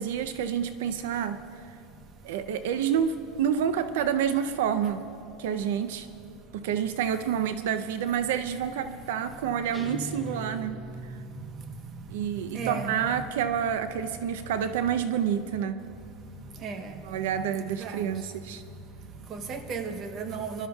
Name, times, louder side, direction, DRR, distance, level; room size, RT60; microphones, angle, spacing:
voice 1, 0.0-1.4 2.2-5.0 5.4-6.1 6.5-11.1 12.1-15.8 17.0-18.6, right 8 dB, 80° right, 10 dB, 0.6 m, -28 dB
sound 1, 9.7-12.3, right 1 dB, ahead, 0.8 m, -40 dB
voice 2, 10.9-12.9 16.2-17.2 17.8-18.1 18.6-18.8 19.0-20.7, right 5 dB, 30° right, 7 dB, 1.0 m, -37 dB
25.0 x 12.5 x 2.3 m, 2.8 s
supercardioid pair, 160°, 0 cm